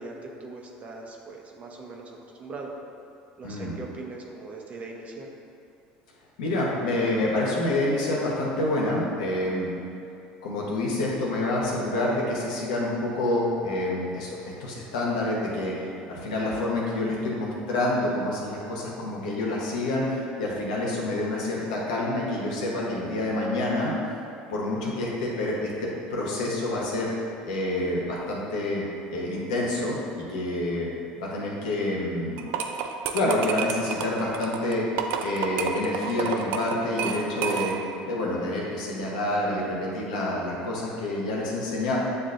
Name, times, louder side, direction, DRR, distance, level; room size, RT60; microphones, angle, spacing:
voice 1, 0.0-2.1 2.4-2.7 3.4-5.3, right 3 dB, 35° right, 0 dB, 0.7 m, -40 dB
voice 2, 3.4-3.8 6.4-9.7 10.4-15.7 16.1-23.9 24.5-27.1 27.5-28.8 29.1-30.9 31.2-32.4 33.1-34.8 35.2-37.7 38.0-42.0, left 1 dB, 85° left, -4 dB, 1.0 m, -27 dB
sound 1, 32.4-38.0, right 7 dB, 70° right, 0.4 m, -30 dB
7.6 x 2.5 x 2.5 m, 2.6 s
supercardioid pair, 90°, 4 cm